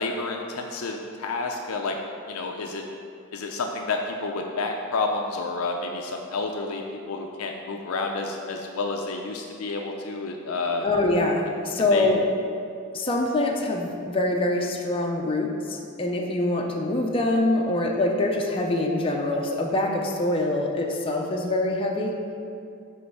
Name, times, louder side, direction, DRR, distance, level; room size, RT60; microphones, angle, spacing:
voice 1, 0.0-2.0 2.3-2.8 3.3-6.8 7.1-10.8 11.9-12.1, left 3 dB, 90° left, 2 dB, 0.5 m, -30 dB
voice 2, 10.8-12.2 12.9-22.2, left 2 dB, 25° left, 0 dB, 0.5 m, -24 dB
7.8 x 3.2 x 5.4 m, 2.5 s
head